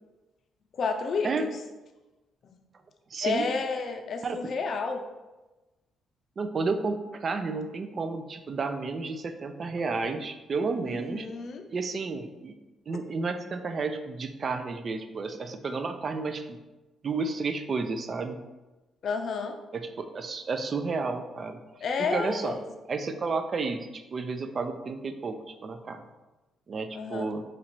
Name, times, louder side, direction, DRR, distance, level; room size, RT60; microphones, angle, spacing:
voice 1, 0.7-1.5 3.2-5.0 10.8-11.7 19.0-19.6 21.8-22.6 26.9-27.3, left 4 dB, 55° left, 5 dB, 0.4 m, -30 dB
voice 2, 3.1-3.5 4.2-4.4 6.4-11.3 11.7-12.5 12.9-16.6 17.0-18.4 19.7-21.6 22.0-22.6 22.9-26.1 26.7-27.4, right 4 dB, 45° right, 8 dB, 0.3 m, -31 dB
3.0 x 2.5 x 4.4 m, 1.1 s
cardioid pair, 90°, 0 cm